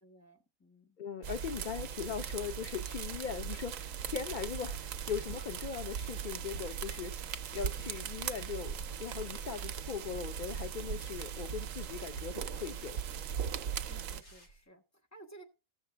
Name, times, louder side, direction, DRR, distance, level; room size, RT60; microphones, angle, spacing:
voice 1, 0.0-1.0 13.9-15.4, right 2 dB, 10° left, 1.5 m, -56 dB
voice 2, 1.0-13.0, left 7 dB, 65° left, 0.4 m, -40 dB
sound 1, 1.2-14.2, right 8 dB, 70° right, 1.0 m, -39 dB
sound 2, 3.4-7.3 7.8-8.0 8.4-9.9 11.4-12.6 13.8-14.6, right 3 dB, 85° left, 3.7 m, -51 dB
15.5 x 6.7 x 3.4 m
omnidirectional pair, 1.5 m